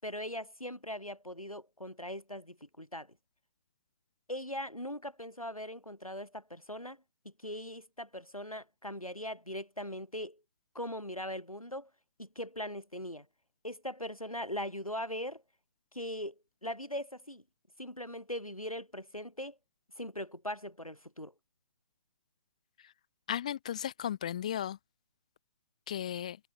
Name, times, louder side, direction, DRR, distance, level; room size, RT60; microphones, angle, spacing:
voice 1, 0.0-3.2 4.3-7.0 7.2-10.4 10.7-11.9 12.2-13.3 13.6-15.4 15.9-16.3 16.6-17.4 17.8-19.6 20.0-21.3, left 1 dB, 90° left, 4.2 m, -40 dB
voice 2, 23.3-24.8 25.9-26.4, left 10 dB, 10° left, 0.3 m, -35 dB
figure-of-eight pair, 140°, 18 cm